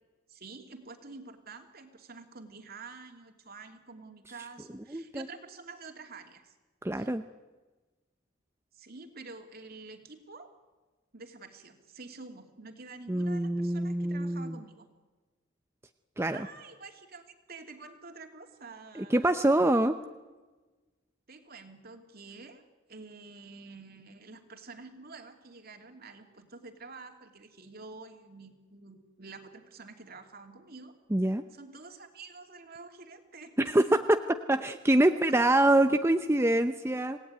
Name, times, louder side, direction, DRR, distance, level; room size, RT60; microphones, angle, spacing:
voice 1, 0.3-6.5 7.0-7.1 8.7-10.5 11.1-14.9 16.3-17.2 17.5-19.4 21.3-22.6 22.9-30.9 31.5-34.0, right 3 dB, 50° right, 5 dB, 2.8 m, -48 dB
voice 2, 4.9-5.2 6.8-7.2 13.1-14.6 16.2-16.4 19.0-19.9 31.1-31.4 33.7-34.2 34.5-37.2, right 1 dB, 15° right, 8 dB, 0.7 m, -25 dB
27.0 x 18.0 x 9.7 m, 1.3 s
head